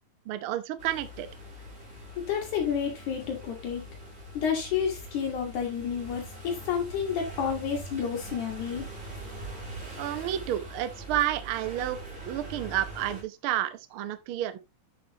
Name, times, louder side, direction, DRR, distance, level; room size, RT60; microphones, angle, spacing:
voice 1, 0.2-1.3 10.0-12.0 12.2-14.6, right 12 dB, 90° right, 1.1 m, -30 dB
sound 1, 0.8-13.2, right 1 dB, 20° right, 4.0 m, -43 dB
voice 2, 2.2-3.9 4.3-8.9, left 7 dB, 70° left, 2.9 m, -30 dB
8.6 x 6.9 x 2.8 m
omnidirectional pair, 3.6 m